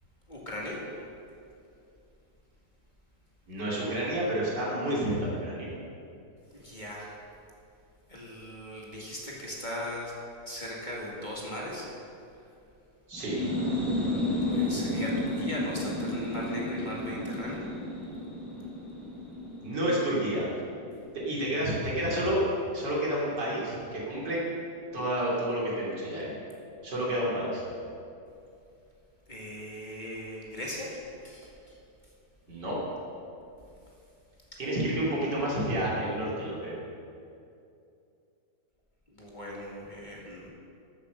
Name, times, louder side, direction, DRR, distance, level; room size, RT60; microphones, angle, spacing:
voice 1, 0.3-0.8 6.6-7.2 8.1-10.1 10.4-11.9 14.5-17.6 29.3-30.9 31.2-31.5 39.2-40.5, left 1 dB, 25° left, -4 dB, 2.2 m, -38 dB
voice 2, 3.5-5.7 13.1-13.5 19.6-20.5 21.3-22.4 22.7-24.4 24.9-26.3 26.8-27.6 32.5-32.8 34.6-36.8, right 1 dB, 80° right, -5 dB, 3.8 m, -30 dB
sound 1, 13.1-20.7, left 1 dB, ahead, 3.1 m, -32 dB
13.5 x 8.3 x 6.7 m, 2.6 s
omnidirectional pair, 1.9 m